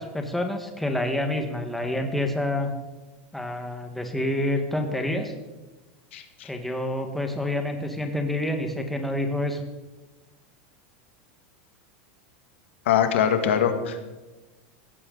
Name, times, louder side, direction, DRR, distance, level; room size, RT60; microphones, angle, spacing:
voice 1, 0.0-2.7 3.3-5.3 6.4-9.6, left 1 dB, 5° left, 4 dB, 1.7 m, -28 dB
voice 2, 6.1-6.5 12.9-14.0, left 8 dB, 85° left, 7 dB, 2.1 m, -23 dB
17.0 x 15.0 x 4.1 m, 1.1 s
supercardioid pair, 145°, 6 cm